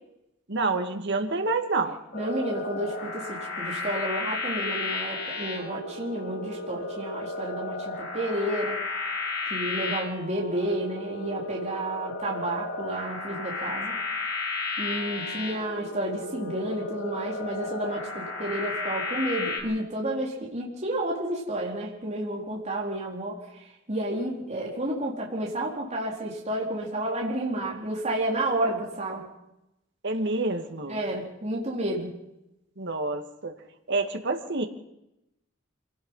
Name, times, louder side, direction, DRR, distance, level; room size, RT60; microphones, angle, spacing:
voice 1, 0.5-2.0 30.0-31.0 32.8-33.5 33.9-34.7, right 3 dB, 60° right, 5 dB, 2.4 m, -28 dB
sound 1, 2.1-19.6, left 3 dB, 50° left, 7.1 m, -33 dB
voice 2, 2.1-8.8 9.5-14.0 14.8-23.4 23.9-29.3 30.9-32.1, right 1 dB, 35° right, -2 dB, 4.4 m, -31 dB
26.5 x 18.5 x 5.8 m, 0.87 s
head